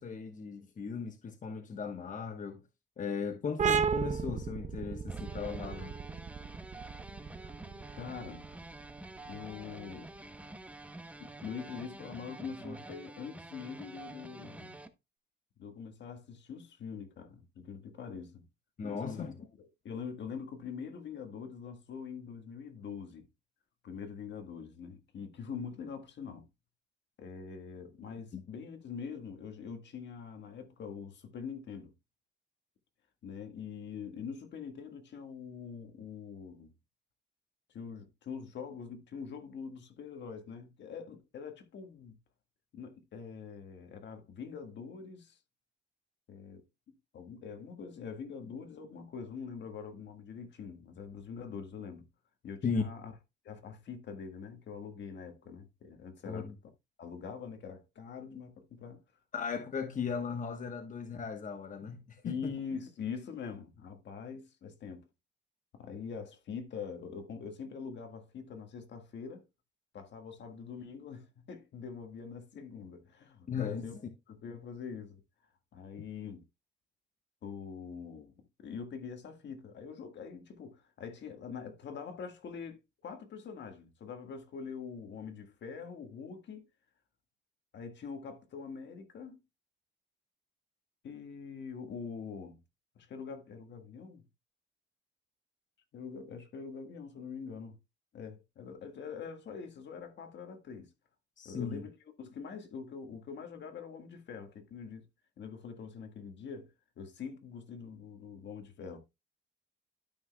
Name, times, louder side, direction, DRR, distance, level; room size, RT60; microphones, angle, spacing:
voice 1, 0.0-2.6 3.0-5.9 18.8-19.5 28.3-28.4 52.6-52.8 56.3-56.5 59.3-62.5 73.5-74.0 101.4-101.8, left 6 dB, 40° left, 1.1 m, -37 dB
sound 1, 3.6-10.9, right 6 dB, 35° right, 0.7 m, -35 dB
sound 2, 5.1-14.9, right 2 dB, 5° right, 0.9 m, -48 dB
voice 2, 8.0-8.4 9.3-10.1 11.2-14.8 15.6-18.4 18.8-19.2 19.6-23.3 23.8-26.5 27.2-31.9 33.2-36.7 37.7-42.1 42.7-45.4 46.3-46.6 47.1-52.0 52.4-53.1 53.4-56.5 57.0-59.0 62.2-65.0 65.7-69.5 69.9-73.9 74.3-75.2 75.7-76.4 77.4-86.7 87.7-89.4 91.0-92.6 92.9-94.2 95.9-97.8 98.1-100.9 101.4-105.0 105.4-109.0, left 6 dB, 65° left, 1.6 m, -44 dB
12.5 x 6.0 x 2.2 m
cardioid pair, 90°, 20 cm